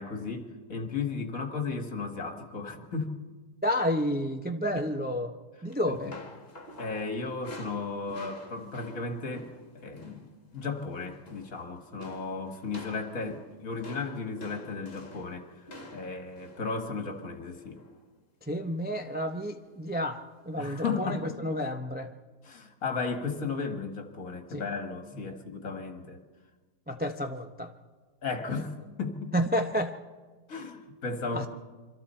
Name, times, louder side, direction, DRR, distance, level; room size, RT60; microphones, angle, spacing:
voice 1, 0.0-3.1 5.9-6.2 6.8-9.5 9.8-17.8 20.6-21.4 22.4-26.2 28.2-29.3 30.5-31.5, left 4 dB, 55° left, 5 dB, 2.2 m, -35 dB
voice 2, 3.6-5.4 5.6-6.1 18.4-22.1 24.5-24.6 26.9-27.7 29.3-30.0 31.3-31.5, equal, 10° right, 5 dB, 0.5 m, -30 dB
sound 1, 5.7-10.3 10.5-10.8 11.1-11.6 12.0-18.0 18.9-19.3 19.6-19.8 20.8-20.9, left 1 dB, 35° left, 2.4 m, -48 dB
27.0 x 24.5 x 4.5 m, 1.3 s
omnidirectional pair, 1.8 m